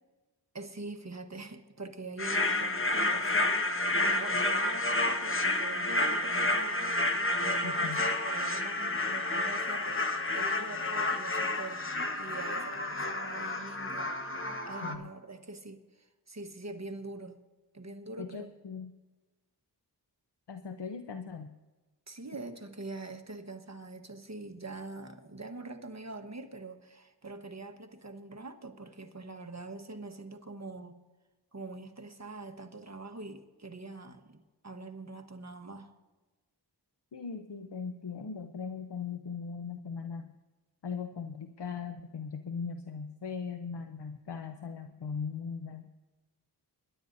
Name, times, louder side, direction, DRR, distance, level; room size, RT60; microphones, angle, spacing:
voice 1, 0.5-11.9 12.1-17.4 17.7-18.5 22.1-31.0 31.5-35.9, right 3 dB, 40° right, 6 dB, 1.3 m, -44 dB
sound 1, 2.2-14.9, left 2 dB, 30° left, 1.3 m, -30 dB
voice 2, 7.6-8.1 14.8-15.1 18.2-18.9 20.5-21.5 37.1-40.3 40.8-45.9, left 6 dB, 75° left, 7 dB, 0.8 m, -39 dB
24.5 x 11.0 x 2.7 m, 1.2 s
cardioid pair, 40°, 42 cm